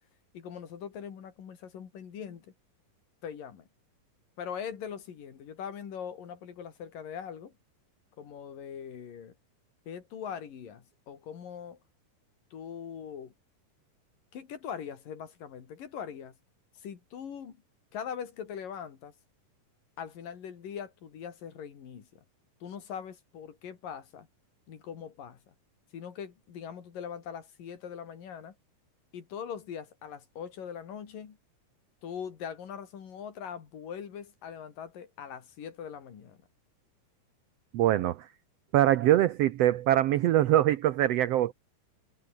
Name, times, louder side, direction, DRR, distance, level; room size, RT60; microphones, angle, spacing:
voice 1, 0.3-2.5 3.2-3.7 4.4-7.5 8.2-9.4 9.9-11.8 12.5-13.3 14.3-16.4 16.7-17.6 17.9-19.1 20.0-22.2 22.6-24.3 24.7-25.5 25.9-28.5 29.1-31.4 32.0-36.4, left 8 dB, 80° left, 4.5 m, -41 dB
voice 2, 37.7-38.3 38.7-41.5, right 13 dB, 90° right, 1.4 m, -23 dB
omnidirectional pair, 3.8 m